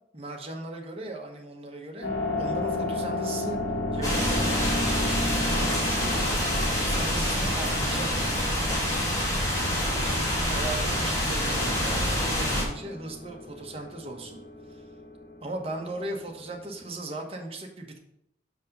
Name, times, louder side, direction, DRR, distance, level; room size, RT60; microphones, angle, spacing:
voice 1, 0.1-2.1 2.4-3.6 3.9-4.9 5.5-6.4 6.7-8.1 10.5-14.4 14.7-14.8 15.4-18.0, right 2 dB, 35° right, 1 dB, 1.2 m, -38 dB
sound 1, 2.0-17.0, left 2 dB, 65° left, 2.3 m, -34 dB
sound 2, 4.0-12.6, equal, 20° left, 2.0 m, -26 dB
6.4 x 5.4 x 5.4 m, 0.79 s
head